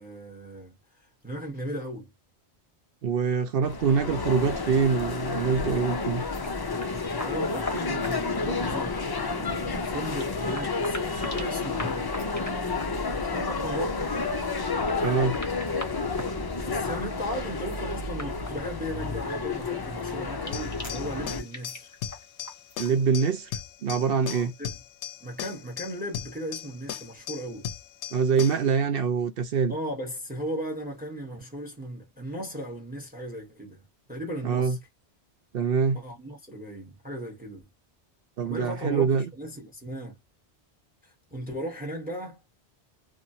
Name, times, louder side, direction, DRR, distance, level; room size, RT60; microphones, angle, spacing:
voice 1, 0.0-2.1 7.2-12.6 12.9-14.3 16.6-21.9 24.2-24.8 25.2-27.7 29.7-33.8 34.1-34.8 35.9-37.7 38.4-40.2 41.0-42.4, equal, 10° right, 0.9 m, -37 dB
voice 2, 3.0-6.2 15.0-15.4 22.8-23.5 23.8-24.5 28.1-29.8 34.4-34.8 35.5-36.0 38.4-39.3, right 6 dB, 65° right, 0.7 m, -24 dB
sound 1, 3.6-21.4, left 4 dB, 40° left, 0.3 m, -30 dB
sound 2, 6.1-23.1, left 1 dB, 20° left, 0.8 m, -45 dB
sound 3, 20.5-28.7, left 9 dB, 90° left, 0.9 m, -38 dB
2.9 x 2.5 x 2.6 m
omnidirectional pair, 1.1 m